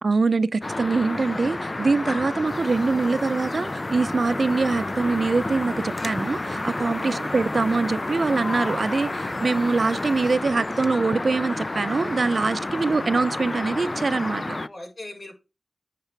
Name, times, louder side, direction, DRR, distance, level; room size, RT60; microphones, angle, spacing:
voice 1, 0.0-14.6, right 3 dB, 65° right, 0.5 m, -24 dB
sound 1, 0.6-14.7, left 2 dB, 40° left, 0.4 m, -30 dB
sound 2, 2.4-10.4, equal, 15° right, 0.8 m, -42 dB
voice 2, 7.0-7.4 14.6-15.3, left 1 dB, 65° left, 4.7 m, -40 dB
8.8 x 4.7 x 4.6 m
cardioid pair, 40°, 0 cm